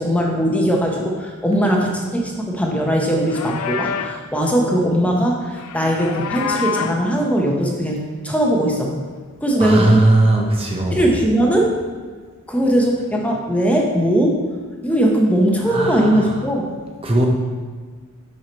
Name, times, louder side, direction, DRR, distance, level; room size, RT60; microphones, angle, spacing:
voice 1, 0.0-8.9 9.4-10.0 10.9-11.8 12.5-14.4 14.8-16.7, right 1 dB, 5° left, -1 dB, 0.8 m, -19 dB
Livestock farm animals working animals, 3.1-4.2 5.5-7.1, left 7 dB, 80° left, 0.4 m, -27 dB
voice 2, 9.6-11.0 15.7-16.3 17.0-17.3, right 2 dB, 25° right, 0 dB, 0.7 m, -18 dB
5.9 x 5.6 x 4.4 m, 1.5 s
head